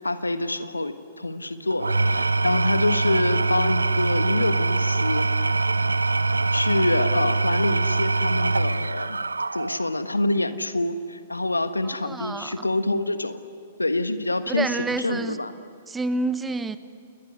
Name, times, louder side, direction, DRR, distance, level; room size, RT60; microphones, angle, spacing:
voice 1, 0.0-5.6 6.5-9.2 9.5-13.4 13.8-15.5, left 2 dB, 85° left, 10 dB, 1.5 m, -26 dB
Engine / Tools, 1.7-10.0, right 3 dB, 80° right, 0.6 m, -23 dB
voice 2, 12.0-12.7 14.5-15.4 15.9-16.8, right 3 dB, 10° right, 12 dB, 1.2 m, -28 dB
29.0 x 21.5 x 9.6 m, 2.4 s
figure-of-eight pair, 110°, 0 cm